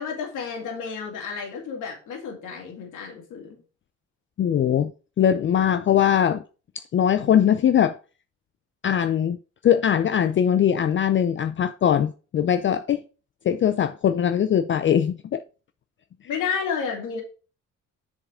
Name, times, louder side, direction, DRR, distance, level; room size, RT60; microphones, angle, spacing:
voice 1, 0.0-3.6 16.2-17.2, left 6 dB, 85° left, 2.4 m, -31 dB
voice 2, 4.4-4.9 5.2-6.4 6.9-8.0 8.8-9.4 9.6-13.0 13.5-15.4, left 9 dB, 40° left, 0.4 m, -21 dB
6.7 x 4.9 x 4.9 m
cardioid pair, 90°, 30 cm